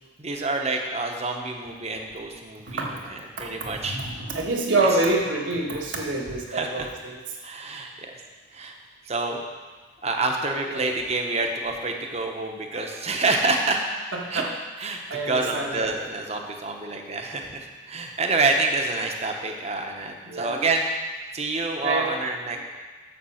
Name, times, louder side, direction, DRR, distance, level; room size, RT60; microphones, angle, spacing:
voice 1, 0.2-2.8 3.1-4.0 4.8-4.9 6.5-6.9 7.4-8.2 8.5-8.8 9.1-9.4 10.0-13.8 14.3-14.4 14.8-15.0 15.3-20.9 21.3-22.6, right 3 dB, 35° right, 3 dB, 0.9 m, -27 dB
voice 2, 2.7-3.5 3.8-7.2 10.7-10.8 14.1-14.5 15.1-15.9 20.2-20.6 21.8-22.2 22.5-22.6, right 2 dB, 75° right, -2 dB, 1.6 m, -27 dB
7.0 x 6.7 x 6.4 m, 1.4 s
head